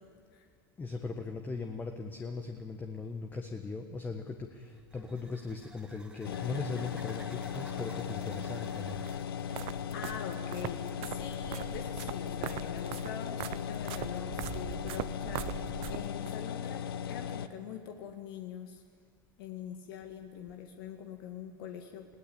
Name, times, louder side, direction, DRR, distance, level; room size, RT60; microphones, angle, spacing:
voice 1, 0.8-9.0, left 4 dB, 15° left, 5 dB, 1.4 m, -39 dB
sound 1, 4.5-9.8, right 2 dB, 5° right, 1.9 m, -54 dB
sound 2, 6.2-17.5, left 8 dB, 90° left, 1.0 m, -37 dB
sound 3, 9.1-16.4, right 15 dB, 50° right, 0.8 m, -42 dB
voice 2, 9.9-15.6 15.9-18.8 19.4-22.1, left 8 dB, 70° left, 4 dB, 1.9 m, -44 dB
21.5 x 17.0 x 8.7 m, 2.2 s
supercardioid pair, 120°, 12 cm